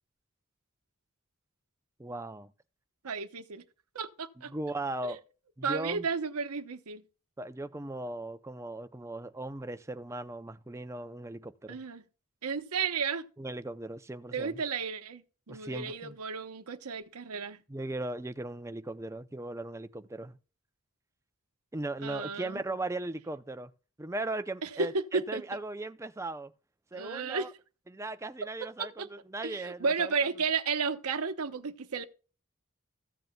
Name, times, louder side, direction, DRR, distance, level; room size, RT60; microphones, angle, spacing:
voice 1, 2.0-2.5 4.4-5.2 5.6-6.1 7.4-11.8 13.4-14.6 15.5-16.2 17.7-20.4 21.7-23.7 24.0-26.5 26.9-27.5 27.9-30.1, right 2 dB, 15° right, 0.5 m, -38 dB
voice 2, 3.0-3.6 3.9-4.5 5.0-5.2 5.6-7.0 11.7-12.0 12.4-13.3 14.3-17.6 22.0-22.6 24.6-25.4 26.9-27.5 28.6-29.1 29.4-32.0, right 5 dB, 90° right, 0.9 m, -33 dB
15.0 x 7.8 x 2.2 m
head